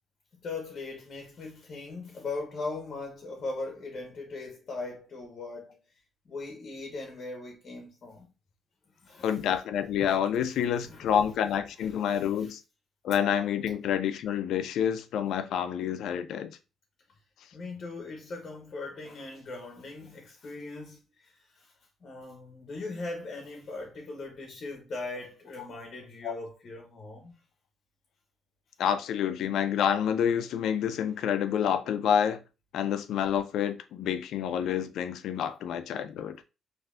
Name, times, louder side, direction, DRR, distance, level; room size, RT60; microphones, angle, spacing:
voice 1, 0.4-5.8 6.3-8.3 9.0-9.4 10.7-11.1 11.7-12.5 17.5-21.7 22.0-27.4, left 3 dB, 50° left, 0.7 m, -40 dB
voice 2, 9.2-12.6 13.0-16.6 26.2-26.3 28.8-32.4 32.7-36.4, left 9 dB, 80° left, 0.3 m, -28 dB
3.2 x 2.6 x 2.4 m
cardioid pair, 90°, 0 cm